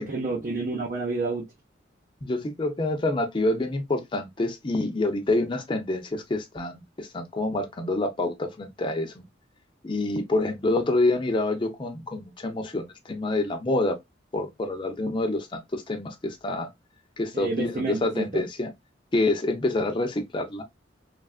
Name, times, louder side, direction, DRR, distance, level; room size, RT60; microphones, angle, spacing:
voice 1, 0.0-1.5 17.3-18.4, right 3 dB, 45° right, 0.7 m, -29 dB
voice 2, 2.2-9.2 9.8-14.0 14.3-16.7 17.2-18.7 19.1-20.6, left 2 dB, 25° left, 0.5 m, -27 dB
3.2 x 2.4 x 2.3 m
head